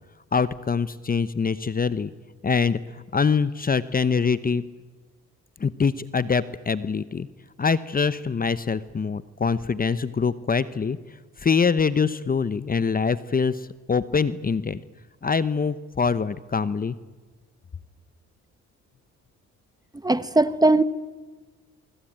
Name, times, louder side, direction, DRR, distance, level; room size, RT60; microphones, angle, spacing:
voice 1, 0.3-2.1 2.4-2.8 3.1-4.6 5.6-7.3 7.6-11.0 11.4-14.8 15.2-17.0, left 5 dB, 30° left, 16 dB, 0.9 m, -24 dB
voice 2, 20.0-20.8, right 2 dB, 15° right, 14 dB, 1.3 m, -19 dB
24.0 x 24.0 x 8.9 m, 1.3 s
cardioid pair, 90°, 30 cm